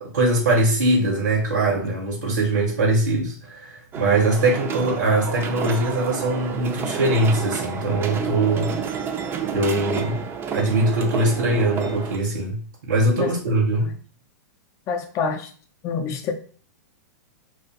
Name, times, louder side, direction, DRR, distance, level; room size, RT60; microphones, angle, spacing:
voice 1, 0.0-9.0 9.4-10.2 10.5-13.9, right 2 dB, 80° right, -1 dB, 0.8 m, -22 dB
sound 1, 3.9-12.2, right 6 dB, 25° right, 0.4 m, -30 dB
voice 2, 14.9-15.5 15.8-16.3, left 5 dB, 35° left, 6 dB, 0.5 m, -27 dB
2.4 x 2.1 x 2.7 m, 0.43 s
hypercardioid pair, 115°, 10 cm